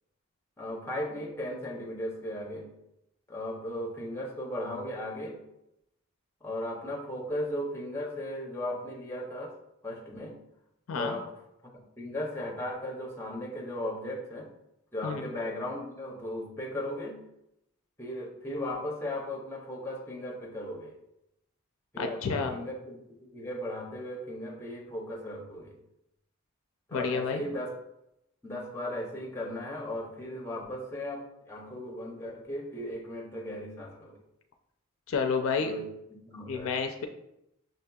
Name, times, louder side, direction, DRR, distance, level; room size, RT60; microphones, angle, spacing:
voice 1, 0.6-2.7 3.3-5.4 6.4-9.5 9.8-10.4 10.9-11.3 11.6-14.5 14.9-17.2 18.0-20.9 21.9-25.8 26.9-27.7 28.4-34.2 35.6-36.8, left 1 dB, 10° left, -1 dB, 0.5 m, -37 dB
voice 2, 22.0-22.6 26.9-27.4 35.1-35.7 36.5-37.1, left 5 dB, 65° left, 6 dB, 0.4 m, -30 dB
6.1 x 2.7 x 2.2 m, 0.84 s
head